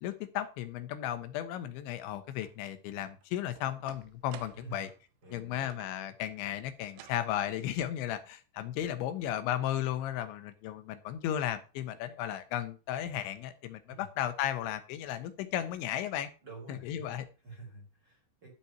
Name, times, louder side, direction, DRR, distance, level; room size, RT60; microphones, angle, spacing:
voice 1, 0.0-4.9 5.3-16.3 16.8-17.3, left 11 dB, 85° left, 10 dB, 3.4 m, -35 dB
sound 1, 2.4-2.6 3.0-6.1 6.9-7.3, right 13 dB, 85° right, 3.2 m, -53 dB
voice 2, 5.2-5.7 13.9-14.1 16.4-18.5, right 3 dB, 30° right, 2 dB, 2.6 m, -49 dB
12.5 x 5.7 x 5.8 m, 0.34 s
omnidirectional pair, 5.2 m